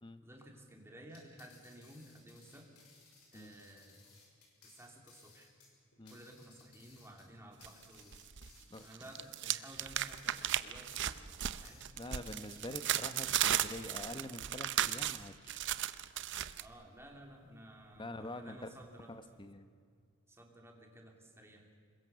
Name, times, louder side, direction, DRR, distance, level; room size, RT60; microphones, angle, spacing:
voice 1, 0.2-2.7 3.3-4.1 4.6-5.5 6.1-8.2 8.8-11.2 11.6-11.9 12.5-12.6 16.6-19.2 20.3-21.7, right 1 dB, 10° right, 2 dB, 2.8 m, -55 dB
sound 1, 1.0-11.9 12.3-13.8, left 4 dB, 90° left, 6.6 m, -62 dB
sound 2, 7.6-8.5 8.8-16.6, right 11 dB, 55° right, 0.7 m, -36 dB
voice 2, 12.0-15.7 18.0-18.7 19.1-19.7, left 1 dB, 20° left, 10 dB, 0.9 m, -46 dB
26.5 x 22.0 x 6.9 m, 2.2 s
head